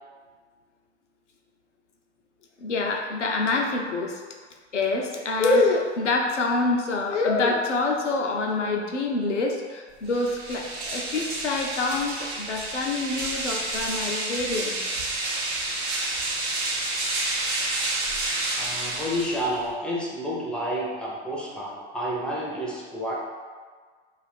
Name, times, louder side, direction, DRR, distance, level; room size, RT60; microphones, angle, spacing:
voice 1, 2.6-4.2 4.7-14.8, left 3 dB, 90° left, 1 dB, 0.5 m, -26 dB
sound 1, 10.0-19.7, right 2 dB, 70° right, 0.8 m, -29 dB
voice 2, 18.6-23.1, equal, 5° left, -4 dB, 0.5 m, -30 dB
2.4 x 2.4 x 3.4 m, 1.5 s
figure-of-eight pair, 85°, 35 cm